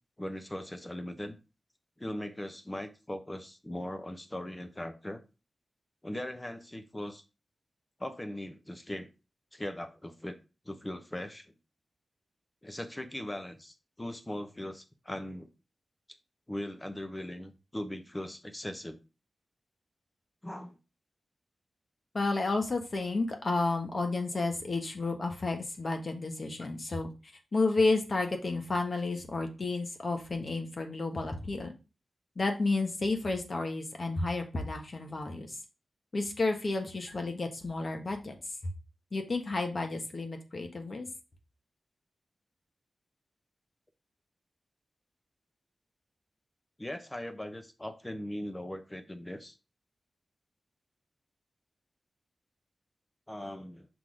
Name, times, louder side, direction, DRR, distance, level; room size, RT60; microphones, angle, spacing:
voice 1, 0.2-1.4 2.0-5.2 6.0-7.2 8.0-9.1 9.5-10.4 10.6-11.4 12.6-15.5 16.5-19.0 20.4-20.8 46.8-49.6 53.3-53.9, left 1 dB, 15° left, 8 dB, 0.9 m, -39 dB
voice 2, 22.1-27.1 27.5-31.7 32.4-35.6 36.1-38.3 38.6-38.7 39.1-41.1, left 3 dB, 45° left, 4 dB, 1.3 m, -31 dB
6.1 x 3.8 x 4.9 m, 0.30 s
wide cardioid pair, 100°, 0 cm